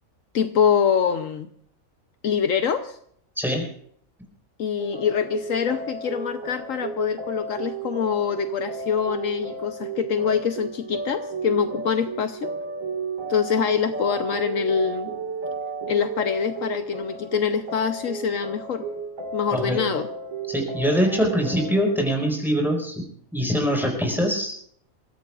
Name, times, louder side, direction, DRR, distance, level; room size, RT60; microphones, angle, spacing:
voice 1, 0.3-1.5 2.2-3.0 4.6-12.5 13.3-15.1 15.9-18.8 19.3-20.1, left 7 dB, 70° left, 8 dB, 1.2 m, -24 dB
voice 2, 3.4-3.7 19.5-19.8 20.5-23.0 23.3-24.5, equal, ahead, 0 dB, 5.1 m, -23 dB
sound 1, 4.8-22.0, right 4 dB, 70° right, 2.3 m, -33 dB
28.0 x 15.5 x 2.5 m, 0.64 s
omnidirectional pair, 1.4 m